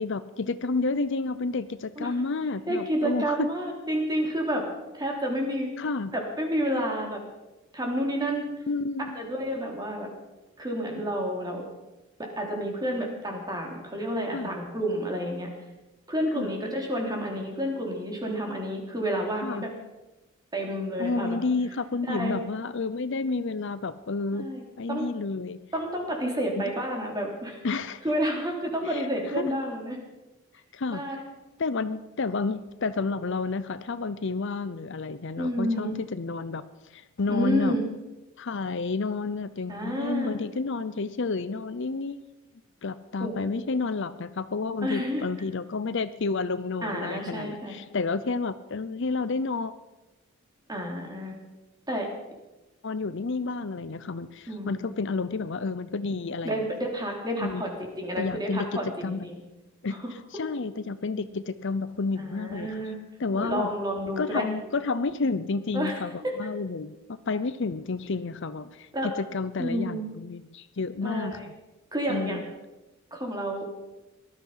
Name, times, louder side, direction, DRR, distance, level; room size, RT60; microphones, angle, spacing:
voice 1, 0.0-3.5 5.8-6.1 8.7-9.2 14.3-14.5 16.3-16.5 19.4-19.7 21.0-24.5 24.8-25.6 26.6-26.7 27.6-28.0 28.8-29.1 29.4-29.5 30.7-31.0 31.6-36.6 36.9-37.8 38.4-42.2 42.8-49.7 52.8-56.6 57.4-57.7 58.2-59.3 59.8-60.0 60.3-62.7 63.2-63.7 64.2-66.1 66.4-67.0 67.3-71.5 72.1-72.4, left 4 dB, 60° left, 13 dB, 0.6 m, -30 dB
voice 2, 2.7-4.6 4.9-5.7 6.1-7.2 7.7-8.4 9.0-10.1 10.6-11.6 12.2-15.5 16.1-19.7 20.5-21.4 22.1-22.4 24.3-24.6 24.9-25.0 25.7-27.6 28.0-30.0 30.9-31.1 35.4-35.9 37.3-37.9 39.7-40.6 43.2-43.6 44.8-45.2 46.8-47.8 50.7-51.3 51.9-52.1 54.5-54.8 56.4-59.4 59.9-60.1 62.2-63.0 63.3-64.5 65.7-66.5 68.9-69.1 69.6-70.1 71.0-71.5 71.9-72.4 73.1-73.7, equal, 20° right, 1 dB, 3.3 m, -30 dB
18.5 x 13.0 x 5.6 m, 1.0 s
head